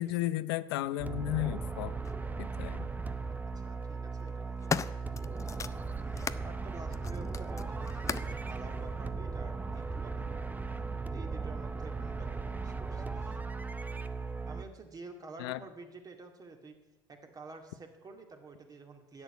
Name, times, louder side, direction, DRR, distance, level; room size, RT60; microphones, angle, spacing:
voice 1, 0.0-2.0 2.4-2.9 15.4-15.6, left 15 dB, 70° left, 16 dB, 0.6 m, -34 dB
sound 1, 1.0-14.6, right 4 dB, 15° right, 0.8 m, -37 dB
sound 2, 2.0-2.2 3.3-3.6 4.2-6.5 6.9-8.4 9.3-9.4, left 6 dB, 25° left, 0.5 m, -37 dB
voice 2, 3.2-5.9 6.4-10.4 11.1-13.4 14.5-16.8 17.1-19.2, right 3 dB, 30° right, 4 dB, 2.1 m, -50 dB
11.0 x 8.1 x 8.1 m, 1.1 s
hypercardioid pair, 70°, 13 cm